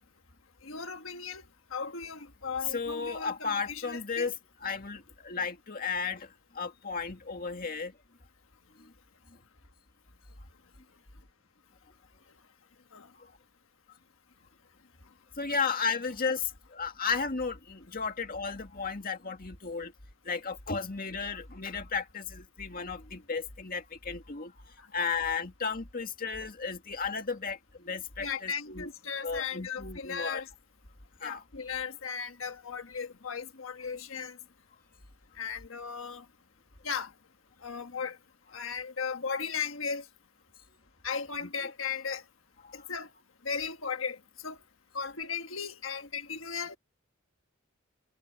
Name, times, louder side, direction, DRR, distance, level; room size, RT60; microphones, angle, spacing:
voice 1, 0.6-1.4 1.7-4.3 12.9-13.1 24.8-24.9 28.2-30.5 31.2-34.4 35.3-36.3 36.8-37.1 37.6-38.2 38.5-40.1 41.0-42.2 42.7-43.1 43.4-44.6 44.9-46.8, left 6 dB, 70° left, 1.4 m, -36 dB
voice 2, 2.7-4.3 4.6-7.9 8.8-8.9 13.2-13.3 15.4-19.9 20.2-24.5 24.9-28.9 29.2-30.4 31.2-31.4 42.6-42.9, left 5 dB, 45° left, 2.1 m, -34 dB
head